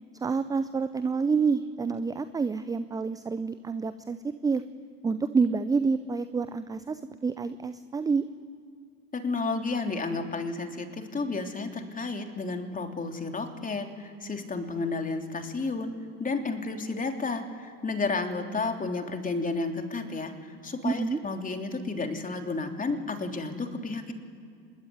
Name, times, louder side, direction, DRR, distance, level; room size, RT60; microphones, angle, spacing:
voice 1, 0.2-4.6 5.0-8.2 20.8-21.2, right 5 dB, 10° right, 12 dB, 0.5 m, -28 dB
voice 2, 9.1-15.9 16.2-24.1, left 3 dB, 15° left, 4 dB, 3.4 m, -32 dB
25.5 x 21.5 x 9.7 m, 2.4 s
figure-of-eight pair, 80°, 49 cm